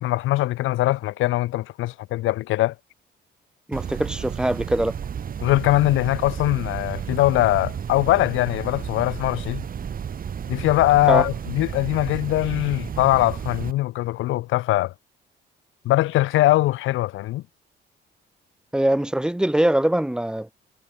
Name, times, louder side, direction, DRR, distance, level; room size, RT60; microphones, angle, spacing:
voice 1, 0.0-2.7 5.4-9.6 10.5-14.9 15.8-17.4, left 16 dB, 85° left, 0.8 m, -21 dB
voice 2, 3.7-4.9 11.1-11.3 18.7-20.5, right 1 dB, 5° right, 1.3 m, -22 dB
sound 1, 3.7-13.7, right 8 dB, 45° right, 1.2 m, -32 dB
cardioid pair, 90°, 20 cm